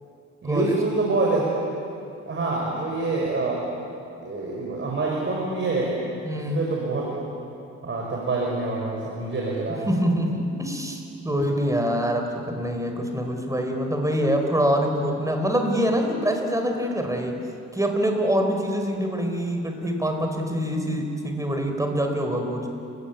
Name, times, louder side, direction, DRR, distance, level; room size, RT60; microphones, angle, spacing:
voice 1, 0.4-1.5 2.3-3.9 4.2-6.0 6.5-7.2 7.8-9.9, right 3 dB, 40° right, -3 dB, 6.0 m, -26 dB
voice 2, 6.2-6.6 9.9-17.4 17.7-22.7, equal, 10° right, 4 dB, 4.8 m, -25 dB
30.0 x 16.5 x 9.5 m, 2.6 s
cardioid pair, 90°, 30 cm